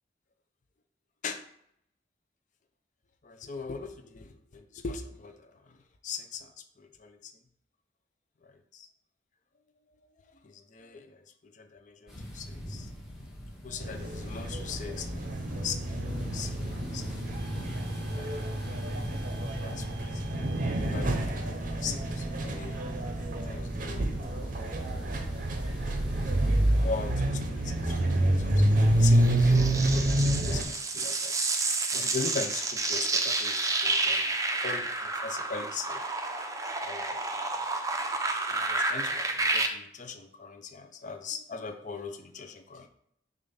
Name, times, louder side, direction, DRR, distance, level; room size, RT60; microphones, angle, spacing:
voice 1, 3.2-5.8 6.0-7.3 8.4-8.9 10.2-12.9 13.6-17.3 18.1-18.7 19.6-22.8 23.4-25.0 25.7-25.8 26.6-31.4 31.9-36.0 36.8-37.5 38.5-42.9, left 5 dB, 45° left, 6 dB, 0.5 m, -41 dB
sound 1, 12.1-29.1, equal, ahead, 1.6 m, -41 dB
sound 2, 13.8-30.6, right 1 dB, 45° right, 0.8 m, -28 dB
sound 3, 29.0-39.7, right 3 dB, 20° right, 0.6 m, -30 dB
6.7 x 2.5 x 5.5 m, 0.71 s
head